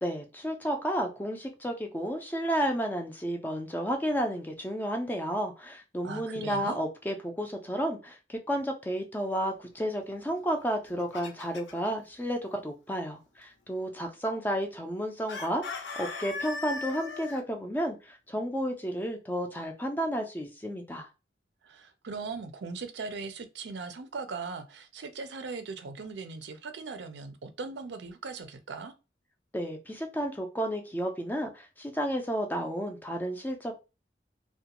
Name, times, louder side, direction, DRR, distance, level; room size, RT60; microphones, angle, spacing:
voice 1, 0.0-21.1 29.5-33.7, equal, 10° left, 0.4 m, -32 dB
voice 2, 6.0-6.8 21.6-28.9, right 4 dB, 80° right, 0.5 m, -39 dB
Chicken rooster, 10.7-11.9 15.3-17.4, left 4 dB, 85° left, 0.6 m, -38 dB
2.4 x 2.1 x 2.8 m
head